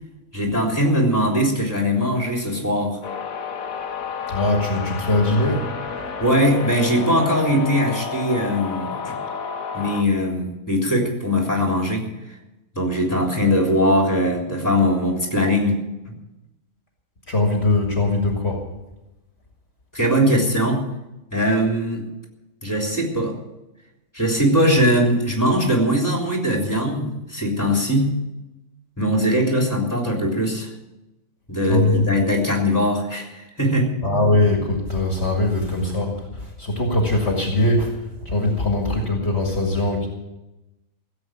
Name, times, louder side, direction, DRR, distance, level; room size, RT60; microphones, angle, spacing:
voice 1, 0.3-3.0 6.2-9.2 9.7-12.0 12.8-15.8 16.1-16.2 19.9-20.8 21.3-22.1 22.6-23.3 24.1-28.1 29.0-30.7 31.5-34.2, equal, 15° left, 0 dB, 3.4 m, -21 dB
sound 1, 3.0-10.0, left 5 dB, 80° left, 1.7 m, -31 dB
voice 2, 4.3-5.7 17.3-18.6 31.7-32.1 34.0-38.0 38.3-40.1, left 2 dB, 50° left, 1 dB, 2.3 m, -21 dB
16.0 x 8.0 x 9.1 m, 0.98 s
omnidirectional pair, 1.4 m